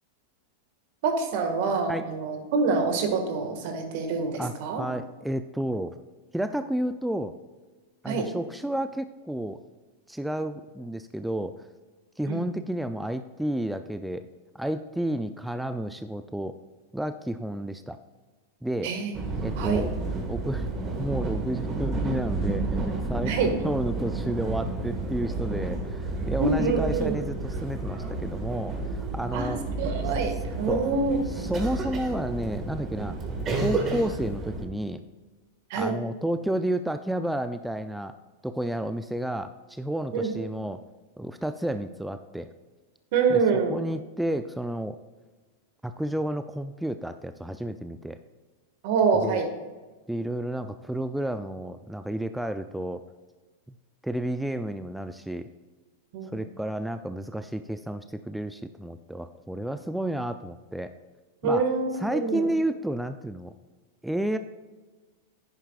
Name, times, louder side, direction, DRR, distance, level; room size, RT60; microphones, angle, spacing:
voice 1, 1.0-4.8 8.0-8.3 12.3-12.4 18.8-19.9 23.2-23.5 26.4-27.2 29.3-31.2 35.7-35.9 40.1-40.3 43.1-43.8 48.8-49.5 56.1-56.4 61.4-62.5, right 4 dB, 60° right, 6 dB, 1.7 m, -26 dB
voice 2, 4.4-6.0 6.3-7.4 8.0-9.6 10.1-11.7 12.2-14.3 14.5-16.6 16.9-18.0 18.6-18.9 19.4-20.7 21.0-23.3 23.6-29.6 30.7-30.9 31.3-33.1 33.5-35.0 35.7-38.1 38.4-40.8 41.2-42.5 43.3-43.4 43.7-45.0 45.8-48.2 49.1-49.4 50.1-53.0 53.7-53.8 54.0-55.5 56.2-60.9 61.4-61.7 61.9-63.5 64.0-64.4, right 1 dB, 5° right, 9 dB, 0.4 m, -31 dB
sound 1, 19.1-34.7, right 3 dB, 30° right, 1.7 m, -31 dB
10.0 x 9.9 x 2.4 m, 1.3 s
hypercardioid pair, 105°, 0 cm